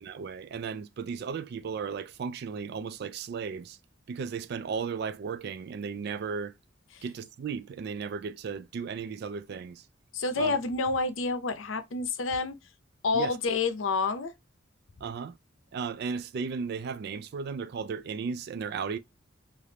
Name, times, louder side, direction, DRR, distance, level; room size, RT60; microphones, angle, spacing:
voice 1, 0.0-3.8 4.1-6.6 7.0-9.9 10.4-10.6 13.1-13.4 15.0-15.4 15.7-19.0, right 5 dB, 55° right, 0.3 m, -35 dB
voice 2, 10.1-12.6 13.0-14.3, left 4 dB, 80° left, 0.6 m, -28 dB
3.3 x 2.5 x 2.7 m
head